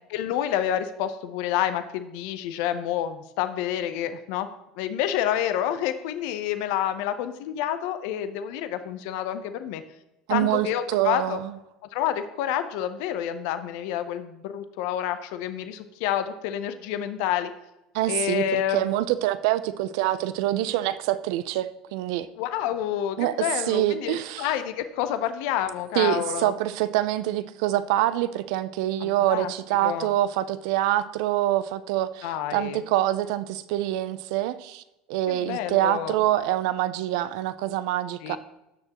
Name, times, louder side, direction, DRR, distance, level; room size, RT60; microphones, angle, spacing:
voice 1, 0.1-4.5 4.8-9.8 10.3-11.4 11.9-17.5 18.1-18.8 22.4-26.5 29.0-29.5 29.8-30.1 32.2-32.8 35.3-36.2 38.2-38.4, left 11 dB, 70° left, 10 dB, 0.8 m, -28 dB
voice 2, 10.3-11.5 17.9-22.3 23.2-23.4 23.7-24.5 26.0-34.8 35.1-38.4, right 14 dB, 75° right, 14 dB, 0.6 m, -25 dB
16.5 x 6.6 x 3.0 m, 0.94 s
hypercardioid pair, 90°, 3 cm